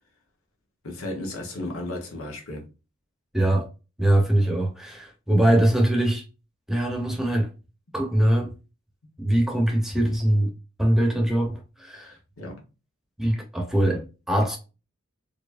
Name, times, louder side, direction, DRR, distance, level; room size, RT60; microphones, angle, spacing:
voice 1, 0.8-2.7 11.9-12.6, left 1 dB, 80° left, 1.2 m, -35 dB
voice 2, 3.3-3.7 4.0-6.2 6.7-7.5 7.9-8.5 9.2-10.5 10.8-12.2 13.2-14.6, right 1 dB, ahead, 0.8 m, -22 dB
4.6 x 2.8 x 2.6 m
head